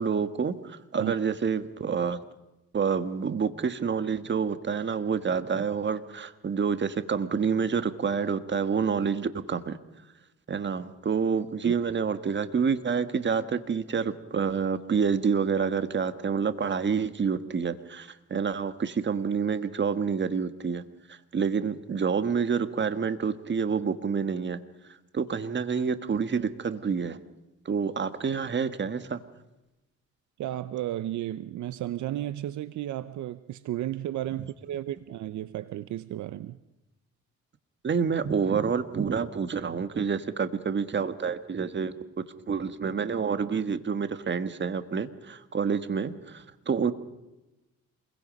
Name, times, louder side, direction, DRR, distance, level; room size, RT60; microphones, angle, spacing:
voice 1, 0.0-2.2 2.7-9.8 10.5-20.8 21.1-24.6 25.1-27.2 27.6-29.2 37.8-41.9 42.5-46.9, right 6 dB, 40° right, 10 dB, 1.5 m, -28 dB
voice 2, 30.4-36.6, right 13 dB, 70° right, 14 dB, 0.7 m, -33 dB
27.5 x 22.0 x 5.3 m, 0.98 s
cardioid pair, 90°, 30 cm